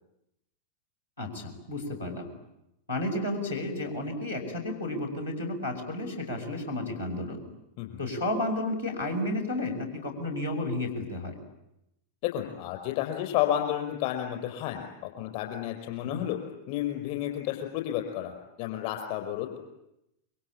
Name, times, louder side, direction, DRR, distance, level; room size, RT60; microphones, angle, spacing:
voice 1, 1.2-2.3 2.9-7.4 8.0-11.3 16.0-16.2, left 1 dB, 80° left, 0 dB, 6.1 m, -32 dB
voice 2, 12.2-16.4 16.7-19.6, left 12 dB, 45° left, 4 dB, 5.4 m, -31 dB
27.5 x 24.0 x 8.8 m, 0.84 s
figure-of-eight pair, 90°, 0 cm